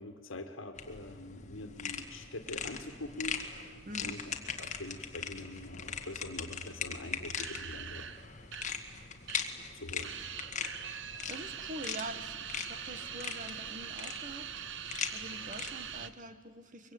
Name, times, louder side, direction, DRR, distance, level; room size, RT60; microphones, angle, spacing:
voice 1, 0.0-4.2 4.6-8.1 9.7-10.2, left 2 dB, 70° left, 6 dB, 1.8 m, -44 dB
sound 1, 0.8-16.1, left 6 dB, 35° left, 1.9 m, -41 dB
voice 2, 3.9-4.2 11.3-16.9, right 1 dB, 40° right, 11 dB, 1.4 m, -45 dB
sound 2, 7.4-9.8 10.0-16.1, right 9 dB, 60° right, 1.0 m, -43 dB
23.5 x 23.5 x 9.5 m, 1.5 s
head